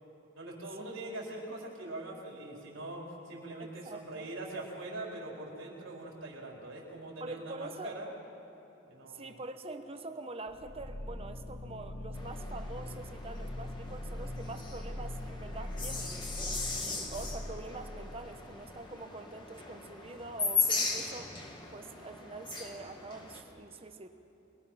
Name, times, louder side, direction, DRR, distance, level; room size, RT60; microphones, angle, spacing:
voice 1, 0.3-8.1 8.9-9.4, right 2 dB, 80° right, -2 dB, 4.3 m, -42 dB
voice 2, 3.6-4.3 7.2-7.9 9.1-16.2 16.7-24.1, right 2 dB, 30° right, 7 dB, 1.1 m, -45 dB
sound 1, 10.5-18.3, left 1 dB, 80° left, 1.6 m, -41 dB
sound 2, 12.1-23.4, left 4 dB, 25° left, 2.1 m, -38 dB
26.0 x 21.5 x 5.8 m, 3.0 s
head